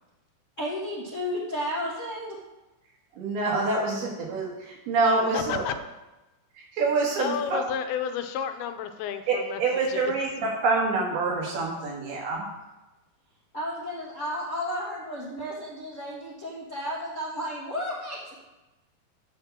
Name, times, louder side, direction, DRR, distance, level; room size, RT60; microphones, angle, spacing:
voice 1, 0.6-2.4 13.5-18.3, equal, 65° left, -7 dB, 0.7 m, -33 dB
voice 2, 3.2-5.6 6.8-7.6 9.3-12.5, right 3 dB, 85° right, -2 dB, 3.7 m, -26 dB
voice 3, 5.3-5.7 7.2-9.6 9.9-10.1, left 8 dB, 85° left, 8 dB, 2.6 m, -31 dB
9.9 x 3.7 x 7.2 m, 1.0 s
omnidirectional pair, 4.3 m